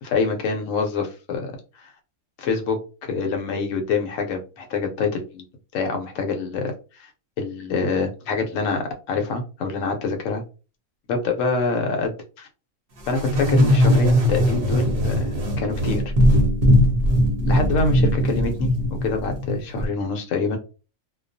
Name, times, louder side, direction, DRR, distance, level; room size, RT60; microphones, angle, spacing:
voice 1, 0.0-1.9 2.4-2.8 3.1-5.4 5.7-7.1 7.4-10.4 11.1-12.5 13.1-16.0 17.4-20.6, left 4 dB, 70° left, 4 dB, 0.9 m, -26 dB
sound 1, 13.1-19.9, equal, 50° right, 0.8 m, -20 dB
2.3 x 2.3 x 2.5 m, 0.34 s
omnidirectional pair, 1.5 m